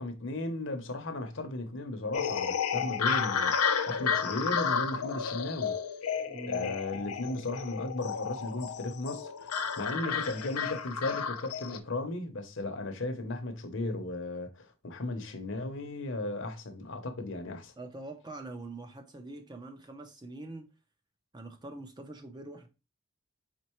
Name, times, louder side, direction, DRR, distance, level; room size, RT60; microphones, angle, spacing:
voice 1, 0.0-5.8 6.5-17.7, left 2 dB, 55° left, 0.8 m, -36 dB
sound 1, 2.1-11.8, left 6 dB, 90° left, 0.6 m, -32 dB
voice 2, 6.3-6.8 17.8-20.7 21.3-22.7, right 2 dB, 20° right, 0.5 m, -44 dB
4.4 x 3.9 x 3.0 m
head